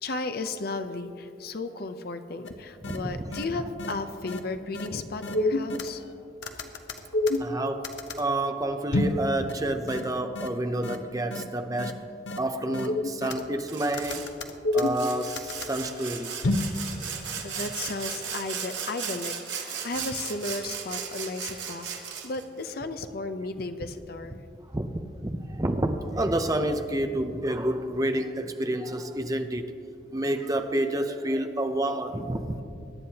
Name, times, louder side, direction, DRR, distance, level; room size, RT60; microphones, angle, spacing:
voice 1, 0.0-6.0 17.4-24.4, left 3 dB, 55° left, 8 dB, 0.6 m, -34 dB
sound 1, 2.5-2.6 2.8-3.0 3.3-3.4 3.8-3.9 4.3-4.4 4.7-4.9 5.2-6.1 6.4-8.2 8.9-9.2 9.5-9.6 9.9-10.0 10.4-10.5 10.8-11.0 11.3-11.4 11.8-11.9 12.3-12.4 12.7-13.6 13.9-15.7 16.4-16.7, left 2 dB, 85° left, 0.9 m, -28 dB
voice 2, 2.9-3.3 7.4-12.0 12.4-14.3 14.7-16.3 24.7-24.9 25.2-29.7 30.1-32.6, right 1 dB, 20° right, 7 dB, 0.6 m, -29 dB
Sawing, 13.7-14.3 14.7-22.4, right 7 dB, 75° right, 1.4 m, -36 dB
21.5 x 9.5 x 2.9 m, 2.6 s
head